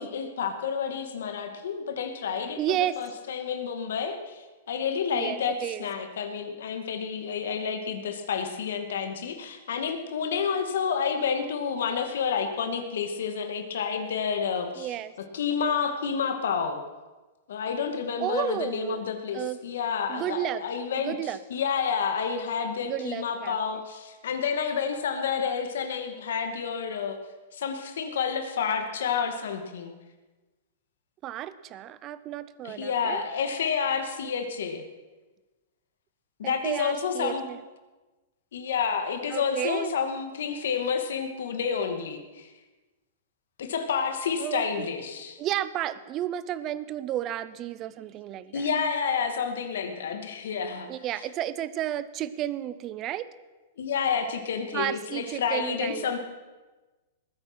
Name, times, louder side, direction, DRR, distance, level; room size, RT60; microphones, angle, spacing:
voice 1, 0.0-5.5 5.8-14.9 15.3-16.8 17.5-27.2 27.5-29.9 32.6-34.8 36.4-37.4 38.5-42.5 43.6-45.4 48.5-50.9 53.8-56.2, left 6 dB, 75° left, 6 dB, 2.3 m, -29 dB
voice 2, 2.6-3.0 5.1-5.9 14.8-15.1 18.2-19.0 19.3-19.6 20.1-20.6 21.0-21.4 22.9-23.6 31.2-33.2 36.4-37.6 39.3-39.9 44.4-44.9 45.4-48.7 50.9-53.3 54.7-56.2, right 12 dB, 25° right, 16 dB, 0.5 m, -32 dB
20.5 x 9.3 x 6.2 m, 1.2 s
supercardioid pair, 170°, 0 cm